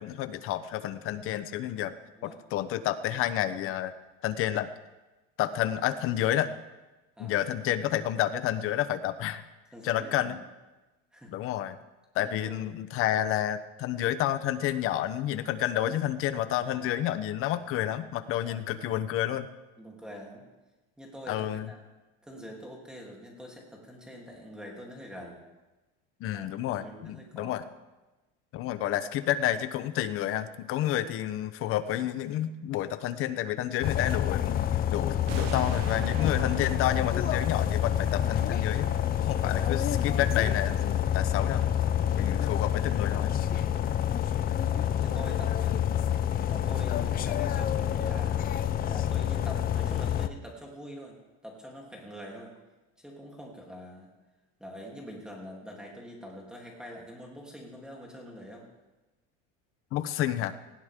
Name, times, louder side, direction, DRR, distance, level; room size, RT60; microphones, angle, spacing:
voice 1, 0.0-1.9 2.2-3.9 4.2-4.7 5.4-6.6 7.2-9.5 9.8-10.4 11.3-11.8 12.1-19.5 21.3-21.7 26.2-27.6 28.5-34.5 34.9-41.6 42.1-43.3 59.9-60.6, left 12 dB, 45° left, 12 dB, 1.0 m, -30 dB
voice 2, 9.7-10.4 11.1-11.3 12.2-12.8 16.6-16.9 18.4-18.7 19.8-20.4 21.0-21.8 22.2-25.4 26.3-27.7 36.1-36.4 39.4-39.8 44.5-45.8 46.5-48.4 48.9-51.2 51.4-52.5 53.0-54.1 54.6-58.7, equal, 5° right, -2 dB, 3.2 m, -45 dB
sound 1, 33.8-50.3, left 10 dB, 30° left, 0.6 m, -28 dB
sound 2, 35.3-44.4 44.7-44.9 45.3-45.4 45.7-45.8 46.0-46.3 46.6-46.7, right 13 dB, 90° right, 0.9 m, -45 dB
19.0 x 15.5 x 3.8 m, 1.1 s
cardioid pair, 150°, 30 cm